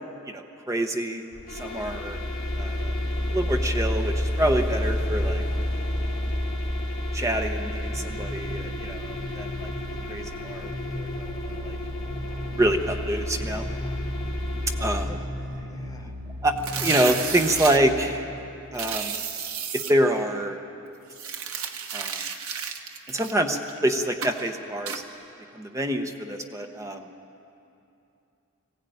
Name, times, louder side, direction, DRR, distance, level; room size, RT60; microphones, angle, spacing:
voice 1, 0.3-1.2 1.5-2.2 2.6-2.9 3.3-5.4 7.1-9.7 10.1-11.8 12.5-13.6 14.8-15.2 16.4-18.3 18.7-19.1 19.7-20.6 21.9-22.2 23.1-25.0 25.5-27.1, right 1 dB, 15° right, 5 dB, 0.8 m, -26 dB
sound 1, 1.3-15.0, left 1 dB, 40° left, 2.8 m, -30 dB
sound 2, 7.8-18.5, left 2 dB, 90° right, 2.7 m, -37 dB
voice 2, 13.3-14.0 15.1-16.1, left 1 dB, 15° left, 4 dB, 0.8 m, -46 dB
sound 3, 16.6-17.8 18.7-19.9 21.1-23.8 24.2-24.4 24.9-25.0, right 7 dB, 70° right, 1.3 m, -32 dB
20.5 x 16.0 x 9.2 m, 2.7 s
head